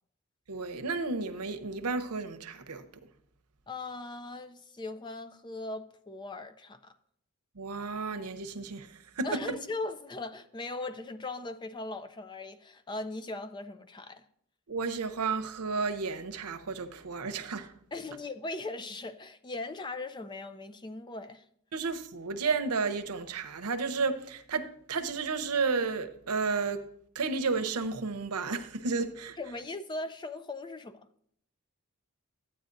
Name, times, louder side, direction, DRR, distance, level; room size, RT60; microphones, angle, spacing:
voice 1, 0.5-2.8 7.6-9.6 14.7-17.7 21.7-26.8 27.1-29.4, right 4 dB, 90° right, 0.8 m, -32 dB
voice 2, 3.7-6.9 9.2-14.3 17.9-21.4 29.4-31.1, left 2 dB, 20° left, 0.4 m, -39 dB
13.0 x 8.9 x 2.6 m
head